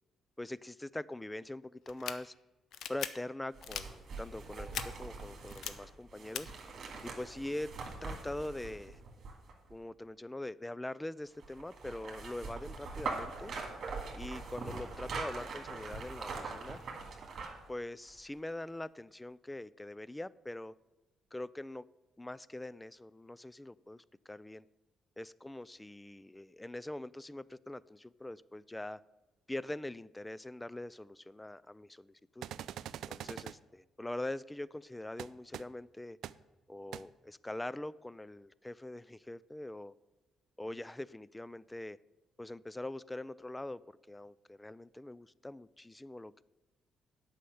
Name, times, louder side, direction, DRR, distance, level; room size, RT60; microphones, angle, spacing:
voice 1, 0.4-2.3 2.9-6.5 7.0-7.7 8.0-9.0 9.7-13.5 14.1-16.8 17.7-20.7 21.3-21.9 22.2-24.7 25.2-29.0 29.5-32.4 33.0-36.2 36.7-39.9 40.6-42.0 42.4-46.4, left 1 dB, 10° left, 0.3 m, -43 dB
sound 1, 1.9-2.1 2.7-3.1 3.6-3.8 4.7-4.8 5.5-5.7 6.3-6.4, left 9 dB, 75° left, 0.6 m, -38 dB
sound 2, 3.5-9.7 11.4-17.7 18.1-18.2, right 4 dB, 55° right, 2.3 m, -43 dB
sound 3, 32.4-33.5 35.2-35.3 35.5-35.6 36.2-36.3 36.9-37.0, right 11 dB, 75° right, 0.3 m, -42 dB
8.5 x 5.6 x 7.8 m
cardioid pair, 90°, 0 cm